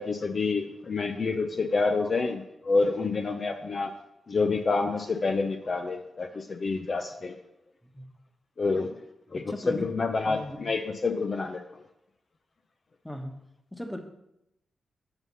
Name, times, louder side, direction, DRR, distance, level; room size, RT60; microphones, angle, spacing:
voice 1, 0.0-3.9 4.3-7.3 8.6-8.9 9.3-11.6, left 4 dB, 50° left, 6 dB, 0.6 m, -28 dB
voice 2, 9.3-9.8 10.2-10.6 13.0-13.3 13.7-14.0, left 1 dB, 10° left, 5 dB, 1.3 m, -37 dB
7.9 x 5.6 x 5.5 m, 0.85 s
cardioid pair, 55°, 0 cm